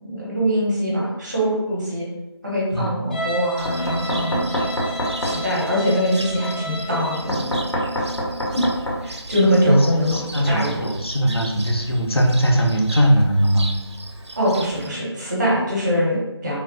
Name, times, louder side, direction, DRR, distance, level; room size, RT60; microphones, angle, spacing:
voice 1, 0.0-2.1 2.4-4.4 5.2-7.5 8.0-8.1 8.5-8.6 9.0-10.9 14.3-16.5, equal, 20° right, -6 dB, 0.7 m, -22 dB
voice 2, 2.7-3.2 9.7-13.7, equal, 60° left, 1 dB, 0.6 m, -20 dB
Bowed string instrument, 3.1-7.3, equal, 20° left, 0.6 m, -32 dB
Cricket, 3.6-14.9, right 2 dB, 75° right, 0.5 m, -37 dB
Knock, 3.7-5.4 7.3-9.0, equal, 90° left, 1.1 m, -25 dB
3.1 x 2.3 x 2.5 m, 0.96 s
figure-of-eight pair, 165°, 15 cm